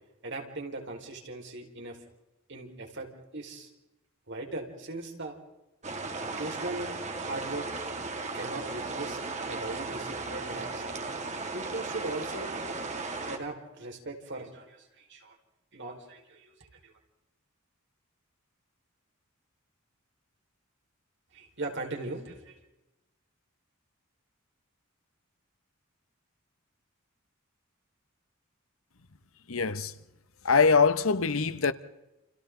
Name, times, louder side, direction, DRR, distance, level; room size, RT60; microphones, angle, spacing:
voice 1, 0.2-2.0 2.5-3.7 4.3-5.4 6.2-7.7 8.3-11.0 11.5-12.5 13.3-15.3 15.7-16.5 16.8-16.9 21.3-22.5, right 2 dB, 60° right, 4.9 m, -39 dB
sound 1, 5.8-13.4, right 3 dB, 35° right, 2.7 m, -36 dB
voice 2, 29.5-29.9 30.4-31.7, left 5 dB, 75° left, 1.1 m, -23 dB
29.0 x 29.0 x 3.9 m
head